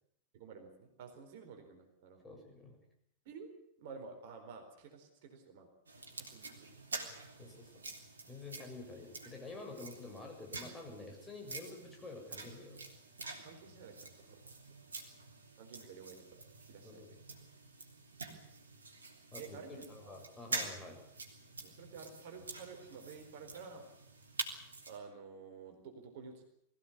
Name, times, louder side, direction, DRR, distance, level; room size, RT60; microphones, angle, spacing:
voice 1, 0.3-2.4 3.2-3.5 3.8-5.7 6.2-6.7 13.3-14.4 15.6-17.1 19.4-20.1 21.6-23.9 24.8-26.4, right 5 dB, 50° right, 5 dB, 4.3 m, -51 dB
voice 2, 2.2-2.8 7.4-7.7 8.3-12.8 16.8-17.1 19.3-19.6 19.9-21.0, left 3 dB, 10° left, 1 dB, 6.8 m, -49 dB
sound 1, 5.9-25.0, right 3 dB, 75° right, 3.5 m, -47 dB
22.0 x 16.0 x 9.8 m, 0.71 s
figure-of-eight pair, 90°, 0 cm